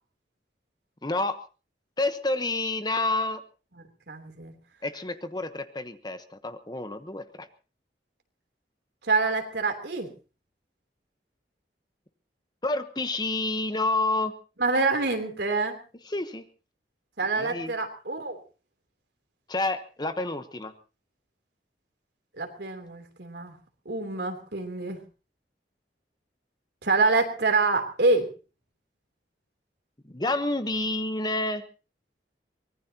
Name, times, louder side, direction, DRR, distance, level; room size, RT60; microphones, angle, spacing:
voice 1, 1.0-1.4 2.0-3.4 4.8-7.5 12.6-14.3 16.0-16.4 17.3-17.7 19.5-20.7 30.1-31.6, left 2 dB, 25° left, 10 dB, 1.1 m, -29 dB
voice 2, 4.1-4.5 9.0-10.1 14.6-15.8 17.2-18.4 22.4-23.5 23.8-25.0 26.8-28.3, right 3 dB, 70° right, 4 dB, 3.3 m, -26 dB
24.0 x 19.5 x 2.9 m, 0.35 s
head